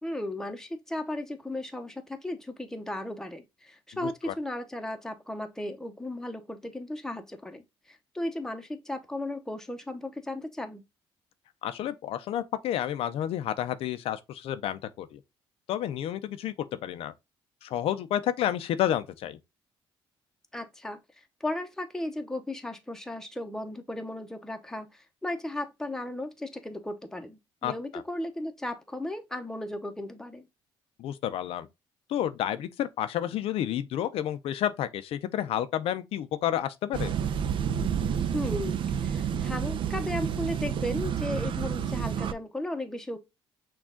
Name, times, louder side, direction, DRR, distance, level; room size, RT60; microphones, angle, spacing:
voice 1, 0.0-10.8 20.5-21.0 21.4-30.5 38.3-43.2, left 1 dB, 5° left, 0.8 m, -35 dB
voice 2, 4.0-4.3 11.6-15.2 15.7-17.1 17.6-19.4 27.6-28.0 31.0-31.7 32.1-37.1, left 11 dB, 70° left, 0.5 m, -30 dB
sound 1, 36.9-42.3, right 8 dB, 55° right, 0.5 m, -29 dB
6.1 x 2.4 x 3.6 m
cardioid pair, 100°, 10 cm